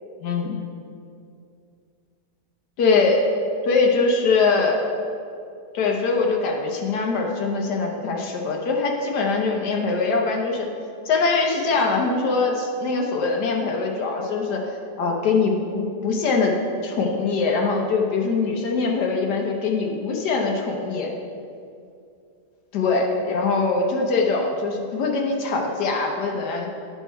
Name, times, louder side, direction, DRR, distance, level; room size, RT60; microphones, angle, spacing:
voice 1, 0.2-0.6 2.8-3.2 3.6-4.8 5.7-10.7 11.0-21.1 22.7-26.7, left 4 dB, 75° left, 0 dB, 1.5 m, -22 dB
12.0 x 4.5 x 4.5 m, 2.5 s
omnidirectional pair, 1.8 m